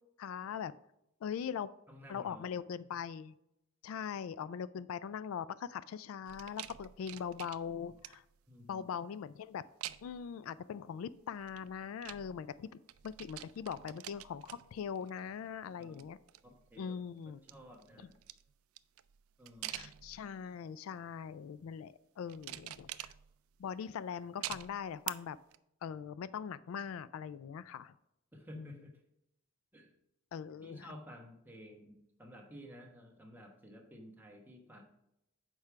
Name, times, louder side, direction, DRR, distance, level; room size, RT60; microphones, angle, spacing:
voice 1, 0.2-0.7 1.2-1.7 2.1-3.3 3.8-8.2 8.7-9.6 10.0-12.7 13.0-16.2 16.8-17.4 19.7-23.1 23.6-25.4 25.8-27.9 28.6-28.7 30.3-30.9, left 7 dB, 75° left, 17 dB, 0.3 m, -41 dB
voice 2, 1.9-2.6 8.5-8.8 15.8-16.0 16.4-17.0 17.3-18.2 19.4-19.9 28.3-29.0 29.7-29.9 30.6-34.8, equal, 10° right, 0 dB, 1.2 m, -53 dB
sound 1, 6.3-8.4 9.8-10.3 11.3-12.6 12.9-15.3 15.7-16.8 17.3-20.5 21.1-21.5 22.3-23.6 24.4-25.1 25.5-25.6, right 14 dB, 80° right, 0.4 m, -47 dB
6.6 x 4.7 x 5.7 m, 0.82 s
head